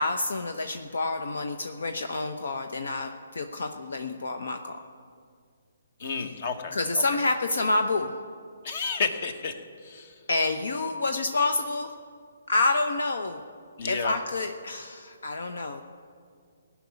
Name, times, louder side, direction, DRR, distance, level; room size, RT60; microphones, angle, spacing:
voice 1, 0.0-4.7 6.7-8.1 10.3-11.9 12.5-13.4 13.9-15.8, left 2 dB, 75° left, 6 dB, 0.8 m, -28 dB
voice 2, 6.0-7.2 8.6-10.2 13.8-14.1, left 5 dB, 50° left, 8 dB, 1.3 m, -32 dB
17.5 x 6.0 x 9.6 m, 2.1 s
figure-of-eight pair, 140°, 0 cm